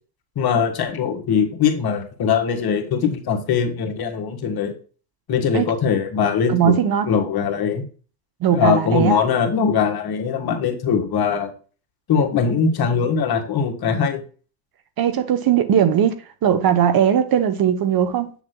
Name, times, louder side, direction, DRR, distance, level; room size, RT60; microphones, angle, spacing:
voice 1, 0.4-4.7 5.3-6.8 7.1-7.8 8.5-11.5 12.1-14.2, left 6 dB, 45° left, 1.9 m, -21 dB
voice 2, 6.5-7.1 8.4-9.1 15.0-16.1 16.4-18.3, right 9 dB, 45° right, 1.0 m, -18 dB
8.0 x 7.0 x 2.3 m
cardioid pair, 110°, 50 cm